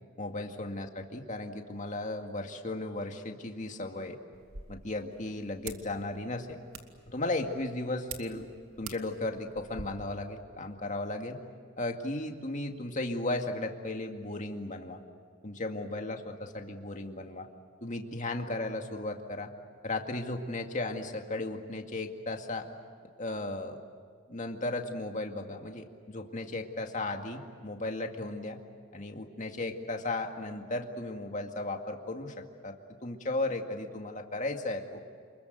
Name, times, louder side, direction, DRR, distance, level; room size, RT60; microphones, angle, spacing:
voice 1, 0.2-4.2 4.7-6.6 7.1-8.5 8.8-11.4 11.8-15.0 15.4-17.5 17.8-19.5 19.8-22.7 23.2-23.8 24.3-28.6 28.9-32.8 33.0-35.0, left 2 dB, 35° left, 4 dB, 2.1 m, -35 dB
sound 1, 4.3-9.8, right 5 dB, 85° right, 2.3 m, -48 dB
29.0 x 21.5 x 8.0 m, 2.2 s
head